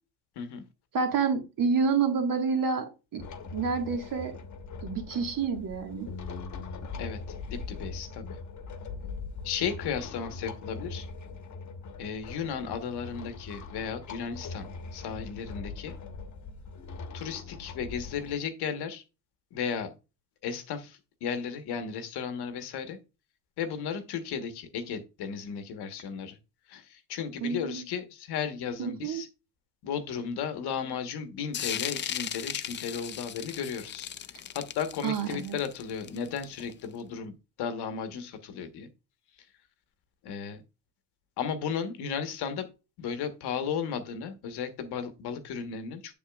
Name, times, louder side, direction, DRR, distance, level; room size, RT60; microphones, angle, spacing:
voice 1, 0.9-3.2 3.5-4.3 4.8-6.1 27.4-27.8 28.8-29.2 35.0-35.6, right 5 dB, 55° right, 5 dB, 1.6 m, -28 dB
sound 1, 3.2-18.3, left 4 dB, 45° left, 1.2 m, -41 dB
voice 2, 7.0-8.4 9.4-11.1 12.0-14.7 14.9-16.0 17.1-19.0 19.5-19.9 20.4-23.0 23.6-26.4 26.7-29.3 29.8-34.1 34.5-38.9 40.2-40.6 41.4-42.7 43.0-46.1, left 7 dB, 70° left, 9 dB, 1.2 m, -35 dB
sound 2, 31.5-36.9, left 9 dB, 30° left, 0.4 m, -37 dB
7.2 x 7.1 x 2.3 m, 0.29 s
cardioid pair, 95°, 41 cm